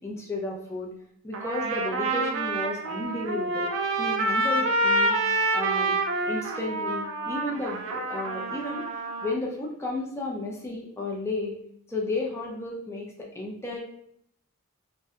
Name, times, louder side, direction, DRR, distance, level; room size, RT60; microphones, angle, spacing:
voice 1, 0.0-0.9 1.2-3.7 4.0-5.2 5.5-6.0 6.2-8.9 9.2-11.5 11.9-13.8, left 2 dB, 15° left, -2 dB, 0.4 m, -33 dB
Trumpet, 1.3-9.4, right 2 dB, 65° right, 0.3 m, -27 dB
2.6 x 2.1 x 2.3 m, 0.71 s
head